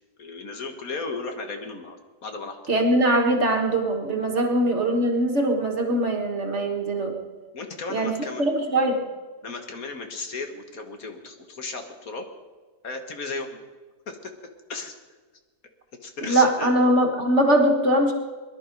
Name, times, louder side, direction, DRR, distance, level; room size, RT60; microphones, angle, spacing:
voice 1, 0.2-2.0 2.2-2.6 4.4-4.5 7.5-8.4 9.4-12.3 12.8-13.6 14.1-14.3 14.7-14.9 16.0-16.7, left 3 dB, 60° left, 5 dB, 1.8 m, -35 dB
voice 2, 2.7-7.2 7.9-9.0 16.2-18.1, right 1 dB, 45° right, 3 dB, 1.8 m, -22 dB
22.0 x 11.5 x 5.3 m, 1.4 s
omnidirectional pair, 1.8 m